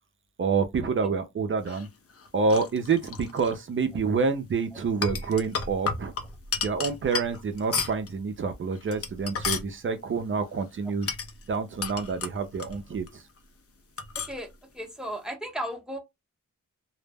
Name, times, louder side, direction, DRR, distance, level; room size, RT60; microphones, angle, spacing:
voice 1, 0.4-1.9 2.3-6.1 6.6-11.1 11.5-13.2, right 5 dB, 40° right, 0.4 m, -27 dB
sound 1, 1.7-3.6 4.8-8.1 8.8-9.7 11.0-13.1 13.4-13.5 14.0-14.4, left 5 dB, 50° left, 0.5 m, -33 dB
voice 2, 14.7-16.0, equal, ahead, 0.7 m, -34 dB
2.0 x 2.0 x 3.3 m
wide cardioid pair, 125°, 30 cm